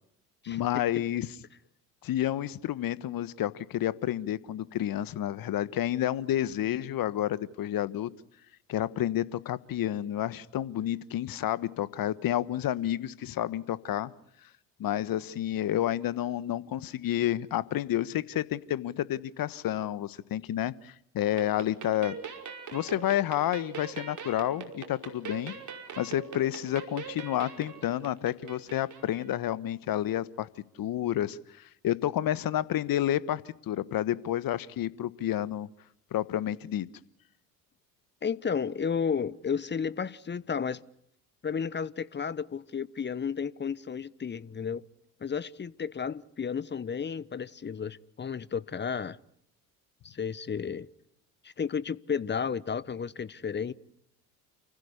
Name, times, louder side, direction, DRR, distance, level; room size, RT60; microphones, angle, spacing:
voice 1, 0.5-1.3 2.0-8.1 8.7-14.1 14.8-22.1 22.7-25.5 26.0-30.5 30.8-35.7 36.1-36.9, left 12 dB, 45° left, 1.4 m, -30 dB
sound 1, 21.3-29.4, right 5 dB, 40° right, 5.3 m, -42 dB
voice 2, 38.2-40.8 41.4-44.8 45.2-49.2 50.0-50.9 51.4-53.7, left 6 dB, 25° left, 1.0 m, -32 dB
29.5 x 16.0 x 9.7 m
hypercardioid pair, 60°, 47 cm